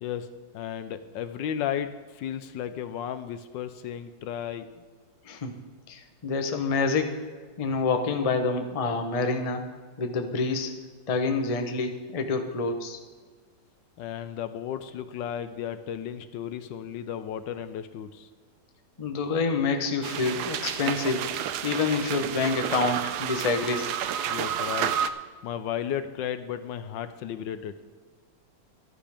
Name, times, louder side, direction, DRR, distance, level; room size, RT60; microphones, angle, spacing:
voice 1, 0.0-4.7 14.0-18.3 24.3-25.0 25.4-27.8, left 9 dB, 75° left, 11 dB, 1.3 m, -34 dB
voice 2, 5.9-7.2 7.6-9.6 10.0-10.7 11.1-13.0 19.0-21.2 21.6-24.0, left 4 dB, 35° left, 5 dB, 0.6 m, -27 dB
sound 1, 20.0-25.1, right 9 dB, 70° right, 1.0 m, -30 dB
15.0 x 11.5 x 3.5 m, 1.5 s
omnidirectional pair, 2.1 m